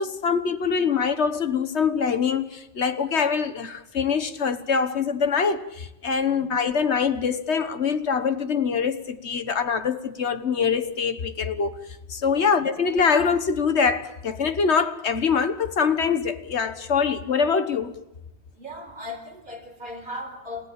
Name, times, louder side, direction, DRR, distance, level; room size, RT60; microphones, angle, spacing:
voice 1, 0.0-11.7 12.1-18.0, left 6 dB, 85° left, 1.6 m, -24 dB
voice 2, 12.2-12.5 18.5-20.7, left 1 dB, 50° right, 4.7 m, -37 dB
29.5 x 16.5 x 9.0 m
omnidirectional pair, 1.1 m